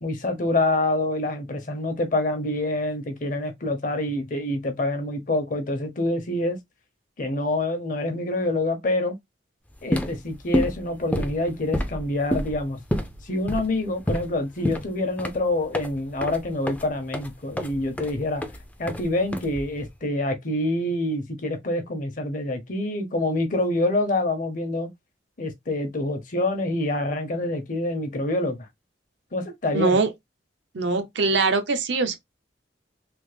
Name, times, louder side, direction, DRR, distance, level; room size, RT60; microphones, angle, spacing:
voice 1, 0.0-6.6 7.2-9.2 9.8-12.8 13.2-18.4 18.8-24.9 25.4-28.7 29.3-30.0, left 2 dB, 45° left, 0.8 m, -26 dB
sound 1, 9.7-19.9, equal, 10° left, 0.4 m, -29 dB
voice 2, 29.7-30.1 30.7-32.2, right 4 dB, 85° right, 0.7 m, -22 dB
3.4 x 2.0 x 3.2 m
head